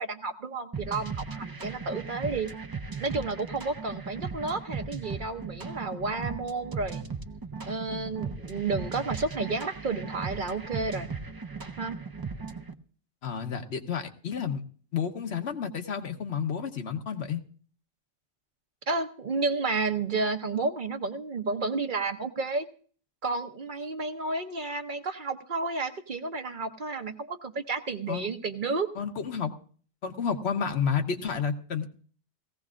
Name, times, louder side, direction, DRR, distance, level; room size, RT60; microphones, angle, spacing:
voice 1, 0.0-2.5 3.0-7.0 7.7-11.1 11.8-12.0 18.9-22.7 23.2-28.9, right 3 dB, 50° right, 7 dB, 0.9 m, -31 dB
sound 1, 0.7-12.7, right 5 dB, 30° right, 0.4 m, -37 dB
voice 2, 13.2-14.6 14.9-17.4 28.1-28.3 28.9-29.5 30.0-31.9, left 7 dB, 70° left, 6 dB, 1.2 m, -30 dB
17.5 x 15.5 x 2.4 m, 0.44 s
omnidirectional pair, 1.2 m